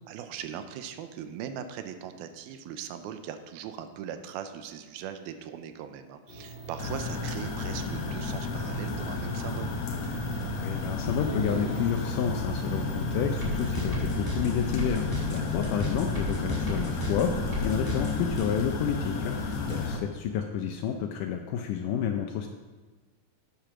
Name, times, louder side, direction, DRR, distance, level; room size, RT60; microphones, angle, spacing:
voice 1, 0.1-9.7 15.4-15.6 19.6-20.0, right 9 dB, 85° right, 9 dB, 2.5 m, -40 dB
sound 1, 6.3-14.1, right 3 dB, 20° left, 1.4 m, -40 dB
sound 2, 6.8-20.0, left 3 dB, 65° left, 1.9 m, -32 dB
voice 2, 10.6-19.4 19.7-22.5, left 8 dB, 80° left, 5 dB, 1.9 m, -30 dB
sound 3, 13.4-18.4, left 1 dB, 5° right, 1.9 m, -34 dB
8.9 x 8.3 x 6.0 m, 1.3 s
omnidirectional pair, 4.3 m